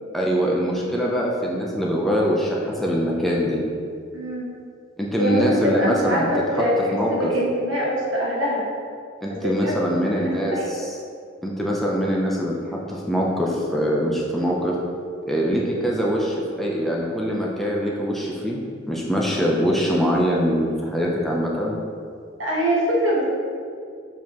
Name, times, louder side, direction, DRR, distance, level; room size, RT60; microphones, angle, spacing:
voice 1, 0.1-3.6 5.0-6.3 6.6-6.7 6.9-7.3 9.2-10.9 11.4-14.8 15.3-18.6 18.9-21.8, equal, ahead, -4 dB, 0.6 m, -23 dB
voice 2, 4.1-4.5 5.2-8.6 9.3-10.7 22.4-23.2, equal, 70° right, -4 dB, 1.4 m, -24 dB
7.2 x 4.5 x 3.0 m, 2.3 s
head